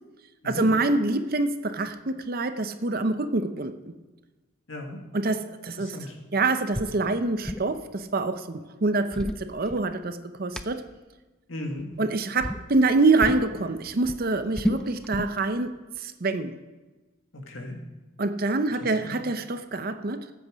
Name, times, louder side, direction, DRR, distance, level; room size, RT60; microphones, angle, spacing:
voice 1, 0.4-3.9 5.1-5.9 6.3-10.8 12.0-16.5 18.2-20.3, right 3 dB, 45° right, 10 dB, 0.7 m, -26 dB
voice 2, 4.7-5.0 5.8-6.2 11.5-11.9 17.3-17.8 18.7-19.1, left 1 dB, 70° left, 2 dB, 1.9 m, -36 dB
sound 1, 6.7-7.0 7.2-7.7 8.9-10.1 10.6-10.7 11.7-12.1 12.4-12.6 13.2-13.5 13.9-15.4, left 1 dB, 5° left, 0.4 m, -31 dB
14.0 x 8.2 x 5.1 m, 1.2 s
head